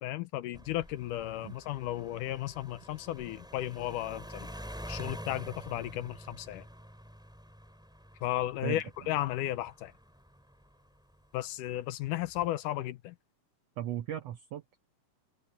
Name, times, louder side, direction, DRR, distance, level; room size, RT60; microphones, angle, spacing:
voice 1, 0.0-4.5 4.9-6.6 8.2-9.9 11.3-13.2, left 14 dB, 80° left, 2.3 m, -34 dB
sound 1, 0.5-11.3 12.0-12.5, equal, ahead, 4.1 m, -47 dB
voice 2, 8.6-9.1 13.8-14.8, right 11 dB, 75° right, 1.5 m, -38 dB
open air
omnidirectional pair, 3.7 m